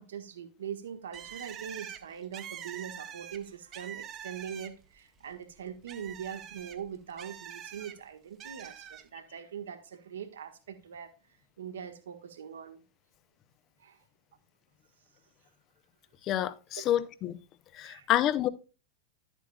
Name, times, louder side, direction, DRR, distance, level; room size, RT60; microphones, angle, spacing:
voice 1, 0.0-11.1 11.6-12.8 13.8-14.0 16.7-16.8 17.8-18.1, right 8 dB, 65° right, 1.3 m, -42 dB
Bird, 1.1-5.0 5.3-7.9 8.4-9.0, right 9 dB, 30° right, 1.0 m, -45 dB
voice 2, 16.2-17.4 17.7-18.5, left 12 dB, 35° left, 0.7 m, -28 dB
11.5 x 8.2 x 2.3 m
figure-of-eight pair, 90°, 0 cm